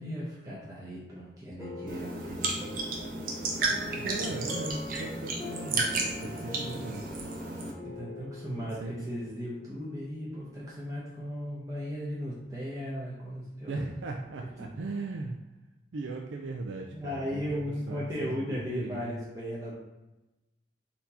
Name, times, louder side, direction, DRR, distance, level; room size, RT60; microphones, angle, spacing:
voice 1, 0.0-2.6 3.9-4.1 7.9-13.8 16.9-19.7, equal, 20° right, -7 dB, 0.8 m, -36 dB
sound 1, 1.6-10.8, left 3 dB, 15° left, 0.4 m, -45 dB
sound 2, 1.9-7.7, right 3 dB, 50° right, 0.7 m, -33 dB
voice 2, 4.0-7.0 8.6-9.1 13.7-15.4 15.9-17.6 17.9-19.2, right 3 dB, 85° right, 1 dB, 0.4 m, -38 dB
4.2 x 2.7 x 4.1 m, 1.0 s
head